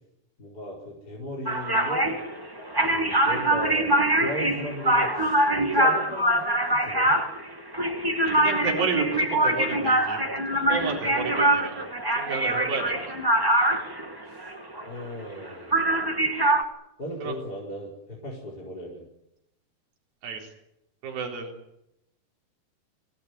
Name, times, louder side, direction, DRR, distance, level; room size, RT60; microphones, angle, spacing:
voice 1, 0.4-2.1 2.8-7.1 14.2-14.4 14.8-15.8 17.0-19.0, equal, 25° left, -1 dB, 5.2 m, -37 dB
sound 1, 1.5-15.5 15.7-16.6, right 1 dB, 10° right, 1.1 m, -24 dB
voice 2, 8.4-10.2 10.5-11.8 12.2-13.2 17.2-17.3 20.2-20.5 21.0-21.5, right 4 dB, 75° right, -1 dB, 5.8 m, -31 dB
25.5 x 18.0 x 9.7 m, 0.83 s
omnidirectional pair, 4.3 m